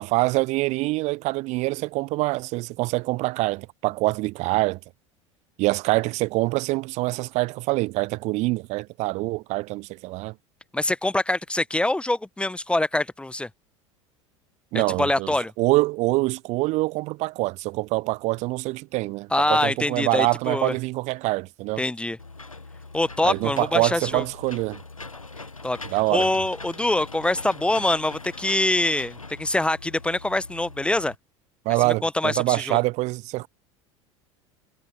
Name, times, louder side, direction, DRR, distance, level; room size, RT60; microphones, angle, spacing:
voice 1, 0.0-4.8 5.6-10.3 14.7-21.8 23.2-24.8 25.9-26.3 31.7-33.5, right 21 dB, 45° right, 0.6 m, -25 dB
voice 2, 10.7-13.5 15.0-15.5 19.3-20.7 21.8-22.2 22.9-24.2 25.6-25.8 26.1-31.1 31.9-32.8, left 1 dB, 5° left, 0.8 m, -24 dB
Engine / Mechanisms, 22.2-31.1, left 3 dB, 90° left, 1.0 m, -42 dB
figure-of-eight pair, 75°, 17 cm